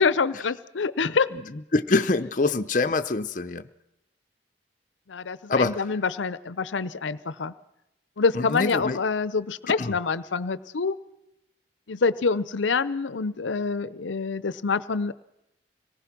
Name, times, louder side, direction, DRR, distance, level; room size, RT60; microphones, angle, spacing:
voice 1, 0.0-1.3 5.1-7.5 8.2-11.0 11.9-15.1, left 4 dB, 85° left, 17 dB, 0.7 m, -26 dB
voice 2, 1.7-3.6 5.5-5.8 8.3-9.0 9.8-9.9, left 3 dB, 45° left, 10 dB, 0.7 m, -24 dB
25.5 x 19.0 x 6.0 m, 0.88 s
head